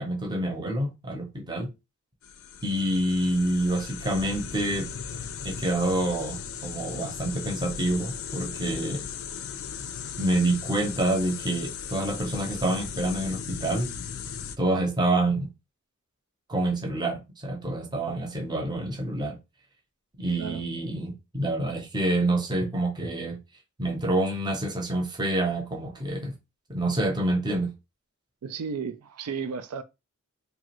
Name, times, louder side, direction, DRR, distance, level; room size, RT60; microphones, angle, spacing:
voice 1, 0.0-1.7 2.6-4.9 5.4-9.0 10.2-13.9 14.6-15.5 16.5-19.4 20.2-23.4 23.8-26.4 26.7-27.7, right 1 dB, 20° right, 0.7 m, -27 dB
sound 1, 2.2-14.6, left 7 dB, 65° left, 0.4 m, -37 dB
voice 2, 28.4-29.8, right 6 dB, 80° right, 0.4 m, -33 dB
2.9 x 2.4 x 3.0 m
head